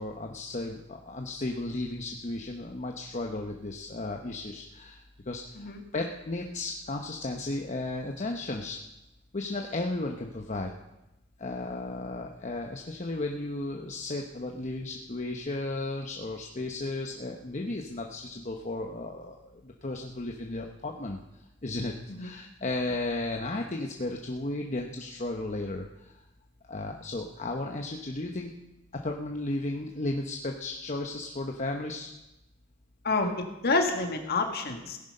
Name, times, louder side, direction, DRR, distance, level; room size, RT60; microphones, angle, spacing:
voice 1, 0.0-8.8 9.3-10.7 11.4-21.2 21.6-21.9 22.2-26.2 26.7-28.5 28.9-32.1, left 2 dB, 35° left, 2 dB, 0.9 m, -34 dB
voice 2, 33.0-35.0, left 3 dB, 50° left, 4 dB, 1.8 m, -28 dB
17.0 x 10.5 x 5.5 m, 0.94 s
head